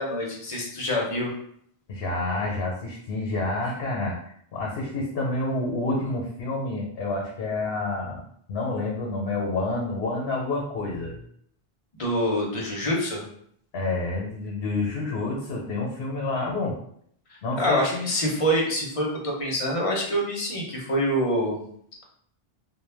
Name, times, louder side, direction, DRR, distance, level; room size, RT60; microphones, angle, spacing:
voice 1, 0.0-1.3 11.9-13.2 17.3-21.6, equal, 40° left, -1 dB, 0.6 m, -26 dB
voice 2, 1.9-8.2 8.5-11.2 13.7-16.8 17.4-18.1, left 2 dB, 85° left, -2 dB, 0.9 m, -29 dB
2.2 x 2.1 x 3.2 m, 0.65 s
omnidirectional pair, 1.0 m